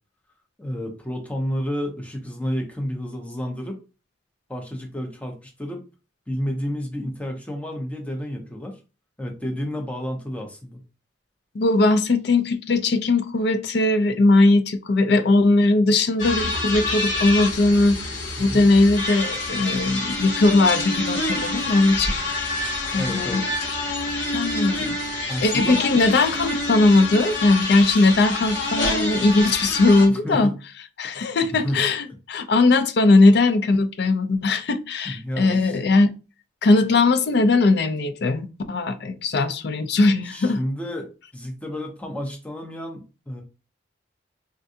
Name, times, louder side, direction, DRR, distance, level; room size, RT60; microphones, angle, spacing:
voice 1, 0.6-3.8 4.5-5.8 6.3-8.8 9.2-10.8 18.4-18.6 22.9-23.6 25.3-25.8 30.1-30.5 31.1-31.8 35.0-35.8 40.2-43.4, equal, 10° left, 0.7 m, -31 dB
voice 2, 11.5-18.0 18.4-22.2 22.9-23.5 23.7-23.8 24.3-30.5 31.0-36.1 36.6-40.6, left 2 dB, 60° left, 0.4 m, -19 dB
sound 1, 16.2-30.1, left 2 dB, 85° left, 1.0 m, -27 dB
3.6 x 2.3 x 2.6 m
head